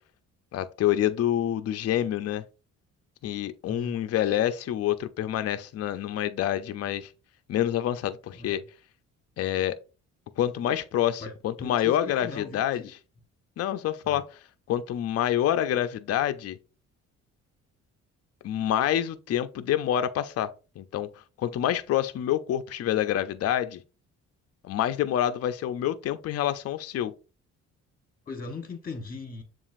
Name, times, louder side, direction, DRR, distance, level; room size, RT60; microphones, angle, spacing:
voice 1, 0.5-2.4 3.2-7.1 7.5-8.6 9.4-9.8 10.4-12.8 13.6-14.2 14.7-16.6 18.4-20.5 20.8-21.1 21.4-23.8 24.6-27.1, left 11 dB, 55° left, 0.5 m, -27 dB
voice 2, 3.7-4.0 8.3-8.6 11.2-11.3 11.6-12.9 14.0-14.2 28.3-29.4, left 3 dB, 30° left, 1.1 m, -39 dB
7.0 x 2.5 x 2.5 m
cardioid pair, 90°, 30 cm